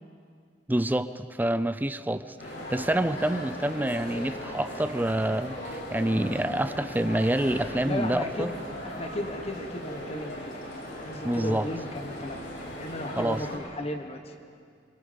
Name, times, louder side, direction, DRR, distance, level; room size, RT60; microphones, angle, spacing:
voice 1, 0.7-8.5 11.2-11.7 13.2-13.4, right 1 dB, 10° right, 12 dB, 0.5 m, -27 dB
sound 1, 2.4-13.6, left 1 dB, 90° left, 7.6 m, -38 dB
voice 2, 7.8-8.5 8.8-10.6 11.0-12.4 12.8-14.3, left 1 dB, 35° left, 5 dB, 1.4 m, -35 dB
27.5 x 24.5 x 5.2 m, 2.2 s
head